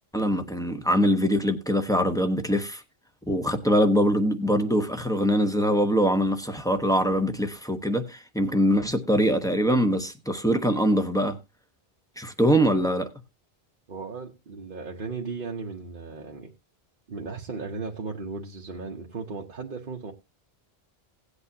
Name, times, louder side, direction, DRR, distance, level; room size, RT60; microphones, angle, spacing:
voice 1, 0.1-2.8 3.3-11.4 12.2-13.1, equal, 5° left, 1.0 m, -23 dB
voice 2, 13.9-16.5 17.1-20.1, right 4 dB, 55° right, 1.2 m, -36 dB
17.5 x 8.2 x 2.8 m
omnidirectional pair, 1.0 m